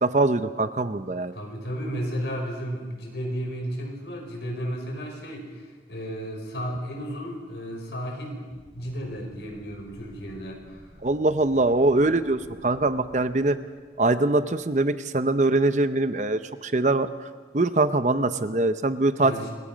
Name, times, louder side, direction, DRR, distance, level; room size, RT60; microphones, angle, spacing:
voice 1, 0.0-1.4 11.0-13.6 14.0-17.1 17.5-19.5, right 2 dB, 40° right, 11 dB, 0.8 m, -23 dB
voice 2, 1.3-8.5 8.7-10.9 19.2-19.5, equal, 75° left, 1 dB, 5.6 m, -33 dB
sound 1, 8.5-14.6, equal, 25° left, 4.8 m, -52 dB
27.0 x 21.5 x 5.3 m, 1.5 s
head